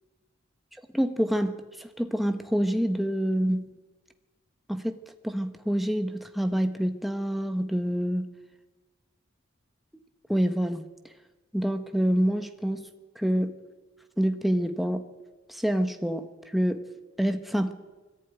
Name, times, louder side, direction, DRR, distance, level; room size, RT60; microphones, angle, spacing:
voice 1, 0.9-3.7 4.7-5.0 5.2-8.3 10.3-10.9 11.5-12.9 13.2-13.6 14.2-15.1 15.5-16.3 16.5-16.9 17.2-17.7, equal, ahead, 7 dB, 1.1 m, -27 dB
21.5 x 14.5 x 9.3 m, 1.2 s
head